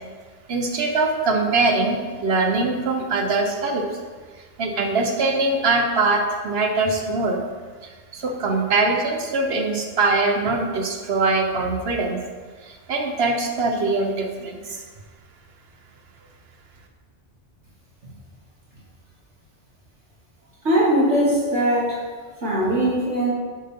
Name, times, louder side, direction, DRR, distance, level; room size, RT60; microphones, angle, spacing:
voice 1, 0.5-3.9 4.6-7.4 8.1-12.2 12.6-14.8, right 3 dB, 60° right, 3 dB, 1.4 m, -22 dB
voice 2, 20.6-22.1 22.4-23.3, right 1 dB, 80° right, -7 dB, 3.5 m, -20 dB
11.5 x 8.2 x 3.8 m, 1.5 s
omnidirectional pair, 1.2 m